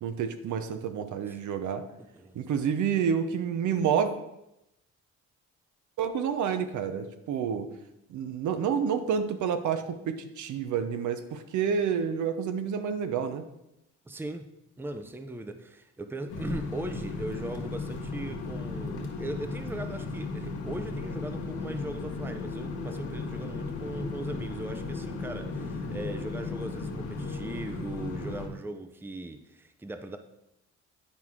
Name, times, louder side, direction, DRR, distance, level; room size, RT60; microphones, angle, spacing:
voice 1, 0.0-1.8 2.3-4.1 6.0-7.7 8.1-13.4, right 7 dB, 75° right, 9 dB, 0.8 m, -29 dB
voice 2, 2.1-2.5 14.1-14.5 14.8-30.2, right 1 dB, 5° right, 8 dB, 0.5 m, -39 dB
sound 1, 16.3-28.5, left 3 dB, 80° left, 1.5 m, -36 dB
sound 2, 20.6-27.6, left 3 dB, 55° left, 1.6 m, -44 dB
9.9 x 4.6 x 3.7 m, 0.86 s
cardioid pair, 90°, 30 cm